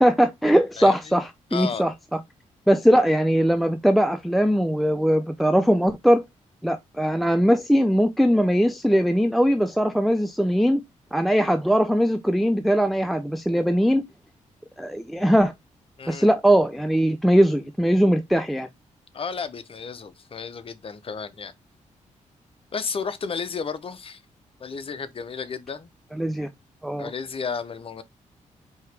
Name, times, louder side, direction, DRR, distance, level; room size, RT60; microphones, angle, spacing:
voice 1, 0.0-2.2 2.7-6.2 6.6-10.8 11.1-14.0 14.8-15.5 16.1-18.7 26.2-26.5 26.8-27.1, equal, ahead, 0.4 m, -20 dB
voice 2, 0.8-1.2 1.5-1.8 16.0-16.3 19.1-21.5 22.7-24.2 24.6-25.9 27.0-28.0, left 5 dB, 45° left, 0.7 m, -32 dB
4.5 x 2.9 x 3.3 m
cardioid pair, 80°, 13 cm